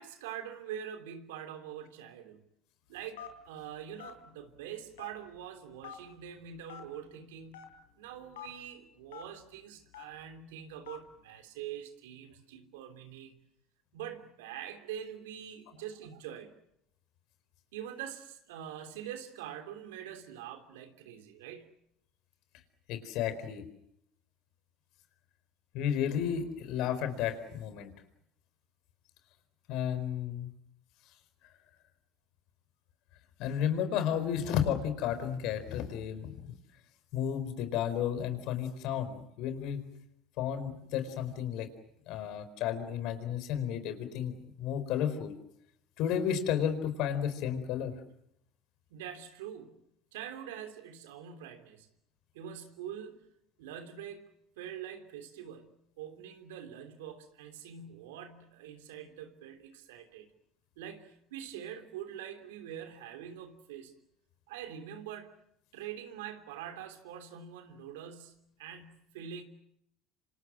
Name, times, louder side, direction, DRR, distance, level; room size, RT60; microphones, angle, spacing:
voice 1, 0.0-2.4 2.9-7.7 8.0-13.4 13.9-16.5 17.7-21.7 48.9-49.8 50.1-51.9 52.3-53.3 53.6-60.3 60.8-63.9 64.5-65.3 65.7-69.4, right 9 dB, 80° right, 3.2 m, -44 dB
Telephone, 3.2-3.5 4.0-4.2 5.0-5.4 5.8-6.0 6.7-6.9 7.5-7.7 8.3-8.5 9.1-9.2 9.9-10.2 10.9-11.0, left 10 dB, 85° left, 4.0 m, -45 dB
voice 2, 22.9-23.6 25.7-27.9 29.7-30.5 33.4-36.4 37.1-39.8 40.4-41.7 42.1-45.3 46.0-47.9, left 9 dB, 65° left, 4.4 m, -32 dB
28.0 x 27.0 x 6.3 m
hypercardioid pair, 75°, 0 cm